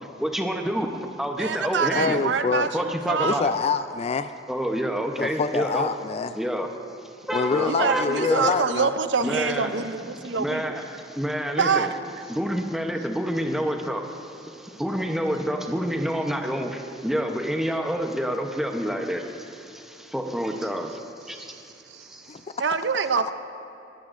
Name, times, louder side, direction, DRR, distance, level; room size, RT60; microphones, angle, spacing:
voice 1, 0.0-2.2 2.7-3.5 4.5-5.9 6.3-6.7 7.3-8.5 9.2-11.9 12.3-21.7 22.0-22.4, equal, ahead, 3 dB, 0.8 m, -28 dB
voice 2, 1.4-3.4 7.7-10.8 11.6-12.0 21.3-21.6 21.9-22.1 22.6-23.3, right 5 dB, 65° right, 10 dB, 0.6 m, -26 dB
voice 3, 1.9-2.7 3.2-4.3 5.2-6.4 7.3-8.9 22.3-22.4, left 5 dB, 35° left, 11 dB, 0.3 m, -26 dB
21.0 x 16.5 x 2.6 m, 2.6 s
head